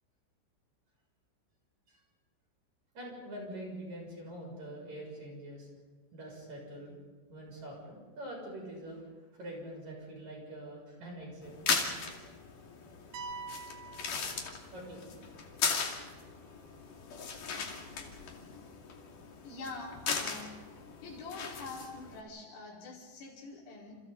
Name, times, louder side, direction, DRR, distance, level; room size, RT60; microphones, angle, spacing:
voice 1, 2.9-5.7 6.1-7.0 7.3-9.0 9.4-11.6 14.7-15.2, right 1 dB, 35° right, -1 dB, 8.5 m, -44 dB
sound 1, 11.4-22.2, left 5 dB, 50° left, 3.5 m, -38 dB
sound 2, 13.1-15.0, right 4 dB, 70° right, 2.4 m, -45 dB
voice 2, 19.4-20.5 21.0-23.9, left 3 dB, 90° left, -3 dB, 7.7 m, -45 dB
29.5 x 29.0 x 4.2 m, 1.4 s
omnidirectional pair, 5.8 m